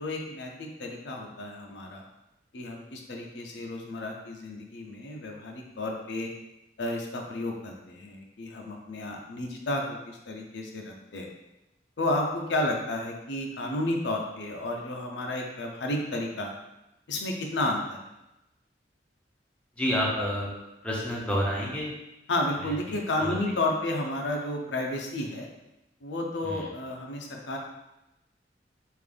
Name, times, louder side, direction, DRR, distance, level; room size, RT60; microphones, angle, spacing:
voice 1, 0.0-2.0 2.5-6.3 6.8-11.3 12.0-16.6 17.1-18.0 22.3-25.5 26.0-27.6, left 1 dB, 75° left, 1 dB, 0.5 m, -32 dB
voice 2, 19.8-20.5 20.8-21.9 23.2-23.3 26.5-26.6, equal, 5° left, -5 dB, 0.6 m, -28 dB
3.7 x 2.5 x 3.3 m, 0.93 s
head